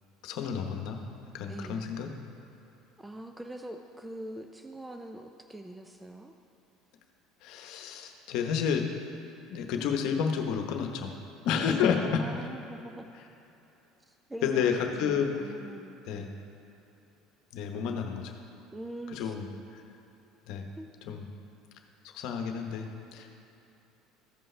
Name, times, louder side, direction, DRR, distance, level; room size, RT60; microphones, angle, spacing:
voice 1, 0.2-1.0 1.3-2.1 7.4-8.9 9.5-11.1 11.4-12.3 14.4-15.4 16.1-16.3 17.5-18.3 19.1-19.5 19.7-19.8 20.5-20.7 21.1-21.2 22.0-23.4, left 7 dB, 65° left, 4 dB, 1.0 m, -30 dB
voice 2, 1.5-1.9 3.0-6.3 12.0-13.1 14.1-16.4 18.7-19.3 20.8-20.9, right 1 dB, 10° right, 5 dB, 0.5 m, -43 dB
15.0 x 5.4 x 3.3 m, 2.9 s
supercardioid pair, 95°, 0 cm